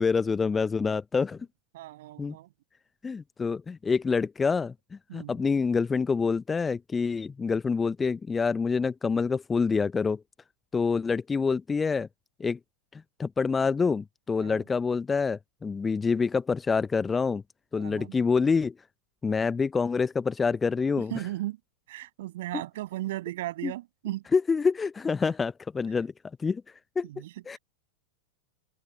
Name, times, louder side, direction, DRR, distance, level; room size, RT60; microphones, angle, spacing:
voice 1, 0.0-1.4 2.2-2.3 3.0-4.7 5.1-10.2 10.7-12.1 12.4-12.6 13.2-17.4 17.7-18.7 19.2-21.1 23.6-23.7 24.3-26.1 26.4-26.6 27.0-27.1 27.5-27.6, left 5 dB, 15° left, 0.7 m, -26 dB
voice 2, 1.7-2.5 5.1-5.4 14.4-14.6 17.8-18.1 21.1-21.6 21.9-24.2 27.0-27.6, right 16 dB, 55° right, 7.3 m, -36 dB
open air
figure-of-eight pair, 90°, 0 cm